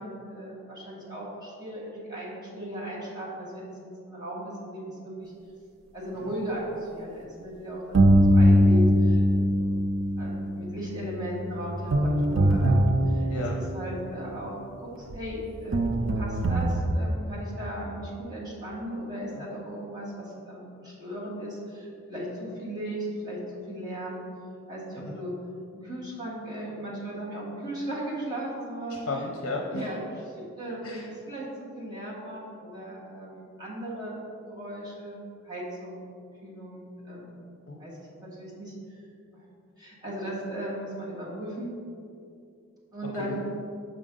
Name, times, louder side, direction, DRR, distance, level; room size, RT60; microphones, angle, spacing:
voice 1, 0.0-3.7 4.0-5.3 5.9-8.0 8.3-9.7 10.2-13.5 13.7-14.6 14.8-23.4 23.7-24.2 24.7-25.3 25.7-29.0 29.7-34.2 34.5-36.1 36.4-37.4 37.8-38.7 39.3-39.4 39.8-41.7 42.9-43.5, right 1 dB, 20° right, -7 dB, 1.4 m, -37 dB
sound 1, 7.9-13.9 15.1-15.2 15.7-16.8, equal, 60° right, 0.5 m, -22 dB
voice 2, 13.3-13.6 19.4-19.5 25.0-25.2 29.1-29.8 30.8-31.1 37.7-37.8 43.2-43.5, left 2 dB, 70° left, -1 dB, 0.6 m, -34 dB
6.5 x 5.1 x 3.7 m, 2.5 s
head